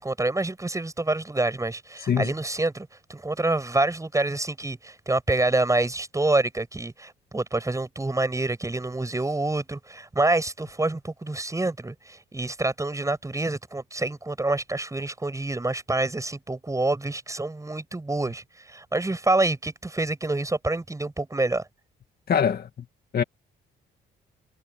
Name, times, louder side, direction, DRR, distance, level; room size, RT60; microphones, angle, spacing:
voice 1, 0.0-21.7, right 2 dB, 15° right, 7.4 m, -27 dB
voice 2, 22.3-22.7 23.1-23.2, left 7 dB, 50° left, 2.0 m, -22 dB
cardioid pair, 90°, 20 cm